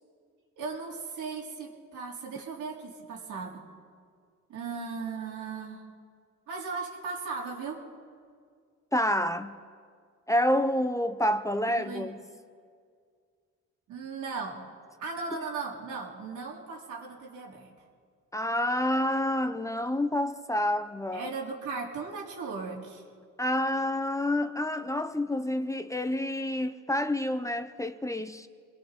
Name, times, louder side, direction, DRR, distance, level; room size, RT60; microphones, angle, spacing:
voice 1, 0.6-3.7 4.5-5.8 6.5-7.8 11.8-12.1 13.9-14.6 15.0-17.7 21.1-23.0, right 4 dB, 80° right, 3.9 m, -37 dB
voice 2, 8.9-9.6 10.3-12.2 18.3-21.3 23.4-28.5, left 1 dB, 10° left, 0.8 m, -28 dB
27.5 x 22.0 x 4.6 m
cardioid pair, 90°, 30 cm